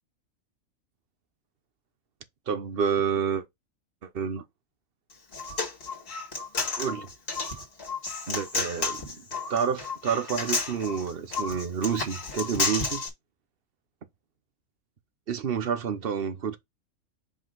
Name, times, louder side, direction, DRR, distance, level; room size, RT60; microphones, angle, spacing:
voice 1, 2.5-3.4 4.0-4.4 6.8-7.1 8.3-9.2 9.5-13.0 15.3-16.6, right 7 dB, 45° right, 1.1 m, -29 dB
Human voice, 5.1-13.1, left 4 dB, 50° left, 2.0 m, -32 dB
5.2 x 4.8 x 3.9 m
omnidirectional pair, 1.4 m